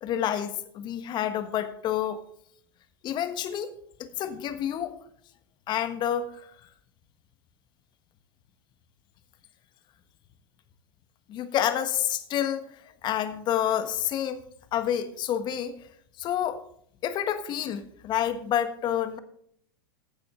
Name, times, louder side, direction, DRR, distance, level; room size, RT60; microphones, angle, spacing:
voice 1, 0.0-2.2 3.0-3.7 4.0-5.0 5.7-6.5 11.3-14.4 14.7-15.8 16.2-16.6 17.0-19.2, left 10 dB, 40° left, 10 dB, 1.4 m, -29 dB
15.5 x 8.5 x 3.7 m, 0.67 s
hypercardioid pair, 100°, 12 cm